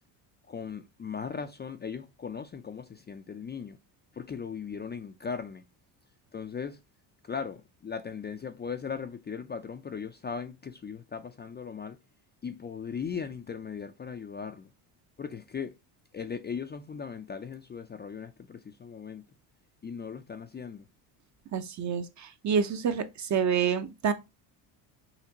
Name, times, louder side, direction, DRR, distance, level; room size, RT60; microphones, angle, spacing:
voice 1, 0.5-3.8 4.1-5.6 6.3-6.8 7.2-12.0 12.4-14.7 15.2-15.7 16.1-19.2 19.8-20.9, left 6 dB, 20° left, 0.4 m, -38 dB
voice 2, 21.5-24.1, right 6 dB, 35° right, 0.8 m, -28 dB
5.9 x 2.9 x 2.8 m
cardioid pair, 105°, 48 cm